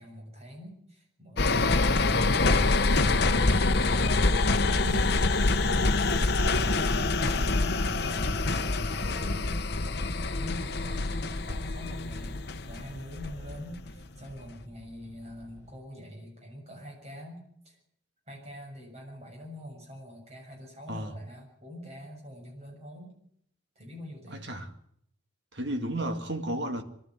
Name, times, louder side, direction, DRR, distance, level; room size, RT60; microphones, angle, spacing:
voice 1, 0.0-6.4 6.7-9.5 9.8-17.8 18.3-23.2 23.8-24.5, equal, 30° right, 7.3 m, -44 dB
sound 1, 1.4-13.9 14.3-14.4, left 3 dB, 55° left, 1.0 m, -26 dB
sound 2, 5.1-15.8, equal, 15° left, 6.9 m, -53 dB
voice 2, 24.3-24.7 25.5-26.8, right 1 dB, 55° right, 2.2 m, -33 dB
23.0 x 12.5 x 9.6 m
head